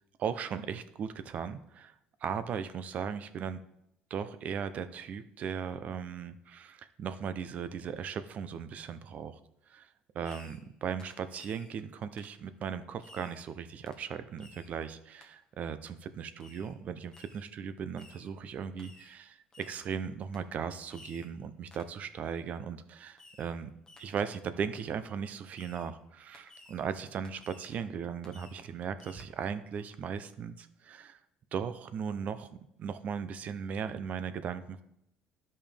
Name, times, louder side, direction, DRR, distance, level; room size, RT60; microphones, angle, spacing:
voice 1, 0.2-1.9 2.2-3.6 4.1-9.4 9.7-9.9 10.1-23.7 24.0-31.2 31.5-32.5 32.8-34.8, right 7 dB, 45° right, 12 dB, 0.6 m, -37 dB
Fireworks, 10.2-10.7 11.0-11.8 12.2-12.4 13.0-13.4 13.9-14.1 14.4-14.7 15.2-15.3 16.4-16.8 17.1-17.5 18.0-18.3 18.8-19.2 19.5-19.9 20.3-20.5 20.9-21.3 21.7-22.0 23.2-23.6 23.9-24.3 24.8-24.9 25.5-25.9 26.3-26.9 27.2-27.8 28.2-28.7 29.0-29.3, left 2 dB, 20° left, 1.1 m, -56 dB
12.0 x 5.4 x 3.4 m, 0.78 s
cardioid pair, 120°, 3 cm